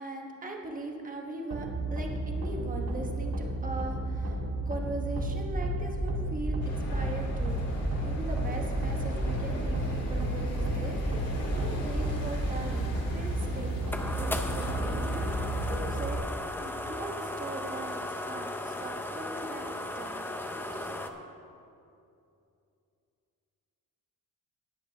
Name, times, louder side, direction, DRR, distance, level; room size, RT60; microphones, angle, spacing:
voice 1, 0.0-13.7 14.2-15.3 15.7-20.3 20.6-21.0, right 2 dB, 25° right, 1 dB, 1.2 m, -40 dB
sound 1, 1.5-16.2, right 1 dB, 85° right, 1.8 m, -32 dB
sound 2, 6.6-15.8, left 1 dB, 45° left, 2.3 m, -38 dB
sound 3, 13.3-21.1, left 1 dB, 5° left, 0.4 m, -36 dB
19.0 x 8.2 x 3.4 m, 2.6 s
wide cardioid pair, 180°, 35 cm